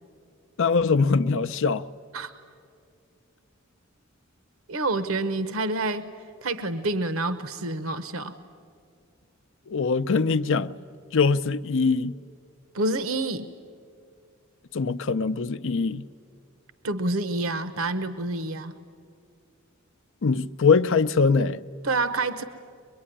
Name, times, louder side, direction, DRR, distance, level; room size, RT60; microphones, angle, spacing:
voice 1, 0.6-1.8 9.7-10.7 11.1-12.1 14.7-16.0 20.2-21.6, left 4 dB, 65° left, 0.6 m, -22 dB
voice 2, 4.7-6.1 6.4-8.3 12.7-13.5 16.8-18.7 21.8-22.4, right 2 dB, 70° right, 0.9 m, -28 dB
23.5 x 22.5 x 10.0 m
head